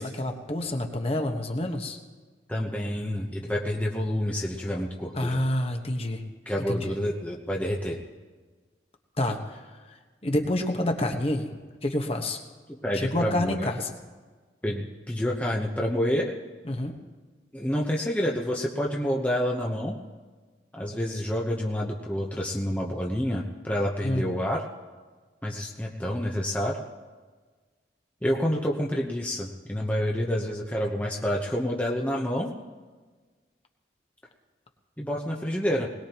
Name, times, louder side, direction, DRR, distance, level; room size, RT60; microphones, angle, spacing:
voice 1, 0.0-2.0 5.1-6.2 6.7-6.9 9.2-9.6 9.9-10.0 10.2-11.5 11.8-12.4 12.9-13.9 16.6-17.0 24.0-24.3, left 1 dB, 35° left, 3 dB, 1.3 m, -28 dB
voice 2, 2.5-5.4 6.5-8.0 12.7-13.7 14.6-16.3 17.5-20.0 20.7-24.6 25.4-26.8 28.2-32.5 35.0-35.9, equal, 10° left, -2 dB, 1.0 m, -28 dB
21.0 x 19.0 x 3.0 m, 1.4 s
head